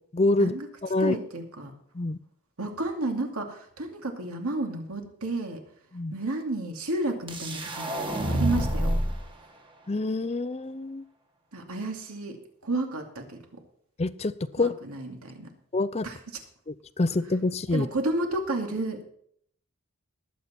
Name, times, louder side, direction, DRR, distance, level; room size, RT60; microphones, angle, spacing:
voice 1, 0.1-0.5 0.9-1.2 1.9-2.2 5.9-6.1 9.9-11.0 14.0-14.7 15.7-16.1 16.7-17.9, left 2 dB, 30° left, 15 dB, 0.5 m, -26 dB
voice 2, 1.0-1.7 2.6-5.6 6.1-9.0 11.5-12.4 12.6-13.4 14.6-15.5 16.0-16.4 17.7-19.0, right 2 dB, 85° right, 3 dB, 2.5 m, -31 dB
sound 1, 7.3-9.2, right 1 dB, 20° right, 1.5 m, -27 dB
20.0 x 8.3 x 4.3 m, 0.65 s
head